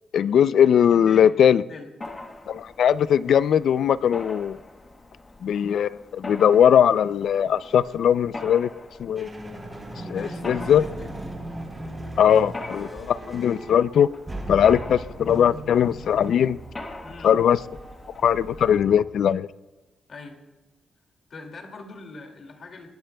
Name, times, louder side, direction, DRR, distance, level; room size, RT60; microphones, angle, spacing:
voice 1, 0.1-1.6 2.5-4.6 5.4-8.7 9.0-9.3 10.1-10.8 12.2-14.1 14.5-16.6 17.2-17.6 18.2-19.5, left 9 dB, 65° left, 0.4 m, -20 dB
Mechanisms, 2.0-18.8, left 2 dB, 20° left, 1.3 m, -42 dB
sound 1, 9.2-19.3, right 1 dB, 10° right, 4.0 m, -38 dB
voice 2, 10.1-11.1 17.0-17.3 20.1-20.4 21.3-22.9, left 3 dB, 45° left, 2.3 m, -42 dB
28.5 x 19.5 x 2.3 m
wide cardioid pair, 155°, 0 cm